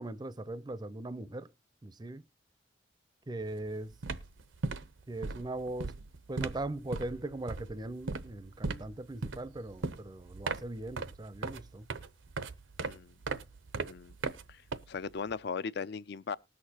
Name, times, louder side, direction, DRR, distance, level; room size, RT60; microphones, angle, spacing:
voice 1, 0.0-1.5 1.8-2.2 3.3-4.0 5.1-6.0 6.3-11.9, right 2 dB, 20° right, 0.5 m, -40 dB
sound 1, 3.4-3.6 3.9-15.3, right 3 dB, 90° right, 0.7 m, -39 dB
voice 2, 12.8-13.2 13.9-14.1 14.5-14.6 14.9-16.4, left 5 dB, 60° left, 0.4 m, -38 dB
19.5 x 6.5 x 2.9 m
head